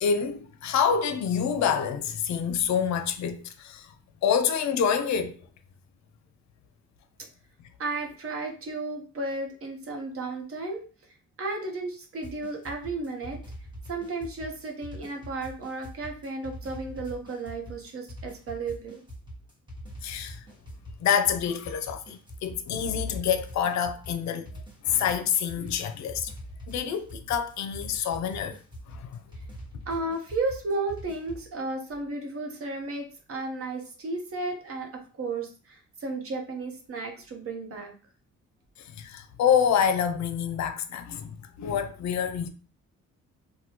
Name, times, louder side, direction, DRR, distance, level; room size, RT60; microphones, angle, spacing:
voice 1, 0.0-3.9 4.2-5.4 20.0-20.4 21.0-24.5 24.8-26.3 26.7-28.6 28.9-29.1 38.8-42.5, left 7 dB, 65° left, 0.5 m, -27 dB
voice 2, 7.8-10.8 11.4-13.4 13.9-19.0 29.9-34.9 35.2-37.9, right 3 dB, 50° right, 0.9 m, -33 dB
sound 1, 12.2-31.5, equal, 15° right, 1.1 m, -43 dB
3.1 x 2.2 x 2.8 m
cardioid pair, 90°, 30 cm